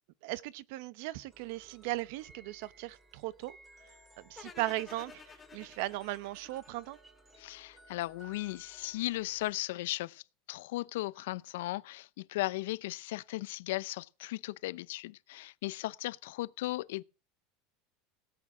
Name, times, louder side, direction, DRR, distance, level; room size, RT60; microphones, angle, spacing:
voice 1, 0.2-3.6 4.2-7.0, right 18 dB, 65° right, 0.8 m, -38 dB
sound 1, 1.3-9.5, right 2 dB, 15° right, 2.0 m, -59 dB
sound 2, 4.4-7.5, left 6 dB, 15° left, 1.1 m, -53 dB
voice 2, 7.4-10.2 10.5-17.0, left 18 dB, 80° left, 0.5 m, -36 dB
18.0 x 8.7 x 4.9 m
supercardioid pair, 155°, 0 cm